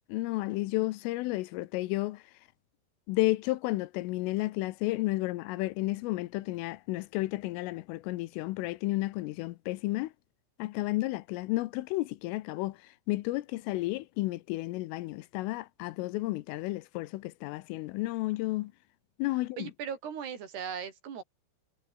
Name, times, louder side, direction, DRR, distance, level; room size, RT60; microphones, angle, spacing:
voice 1, 0.1-2.2 3.1-10.1 10.6-12.8 13.1-18.7 19.2-19.7, left 19 dB, 90° left, 3.4 m, -32 dB
voice 2, 19.6-21.2, right 7 dB, 55° right, 4.9 m, -38 dB
omnidirectional pair, 5.9 m